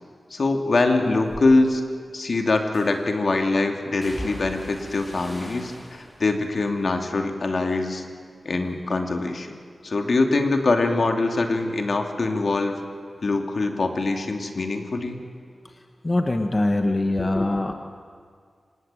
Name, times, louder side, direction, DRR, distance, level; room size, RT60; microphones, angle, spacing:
voice 1, 0.3-1.8 2.1-8.0 8.4-9.6 9.8-12.8 13.2-15.2, left 3 dB, 65° left, 4 dB, 2.7 m, -23 dB
sound 1, 1.3-1.5 2.7-3.2 4.0-8.2 8.6-9.2 9.6-12.8 13.1-14.2 14.5-14.7, equal, 15° left, 4.3 m, -43 dB
voice 2, 16.0-17.7, left 2 dB, 35° left, 5 dB, 1.6 m, -22 dB
25.5 x 19.5 x 9.1 m, 2.1 s
cardioid pair, 60°, 0 cm